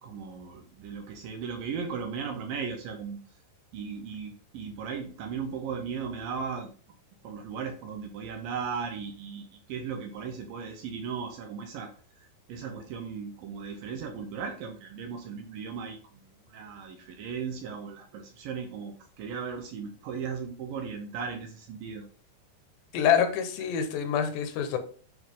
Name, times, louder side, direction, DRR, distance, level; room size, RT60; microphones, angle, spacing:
voice 1, 0.0-3.2 3.7-6.7 7.2-11.9 12.2-22.1, right 6 dB, 70° right, 4 dB, 2.3 m, -37 dB
voice 2, 22.9-24.8, left 8 dB, 80° left, 8 dB, 3.3 m, -26 dB
9.2 x 5.5 x 3.8 m, 0.42 s
omnidirectional pair, 4.9 m